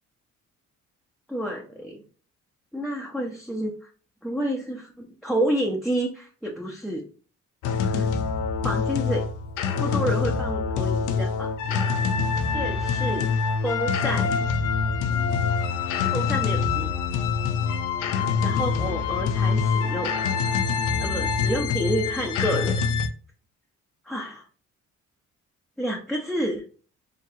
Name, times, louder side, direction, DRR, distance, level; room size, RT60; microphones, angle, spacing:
voice 1, 1.3-2.0 2.7-3.9 4.2-7.0 7.8-8.1 8.6-9.3 9.8-11.8 12.5-14.3 16.1-17.0 18.4-20.2 21.0-22.8 24.0-24.4 25.8-26.6, equal, ahead, -1 dB, 0.8 m, -29 dB
sound 1, 7.6-23.1, left 5 dB, 85° left, 0.6 m, -25 dB
4.9 x 2.9 x 2.8 m, 0.40 s
cardioid pair, 90°, 30 cm